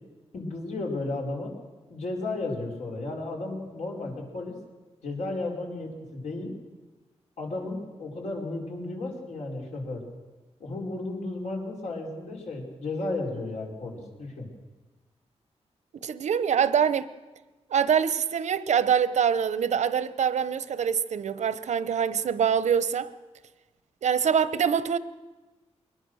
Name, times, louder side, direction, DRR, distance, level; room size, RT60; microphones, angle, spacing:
voice 1, 0.3-1.5 1.9-4.6 5.0-6.5 7.4-10.0 10.6-14.5, left 2 dB, 85° left, 4.9 m, -34 dB
voice 2, 16.0-17.1 17.7-23.1 24.0-25.0, right 7 dB, 85° right, 0.9 m, -24 dB
22.5 x 20.5 x 6.4 m
wide cardioid pair, 140°, 12 cm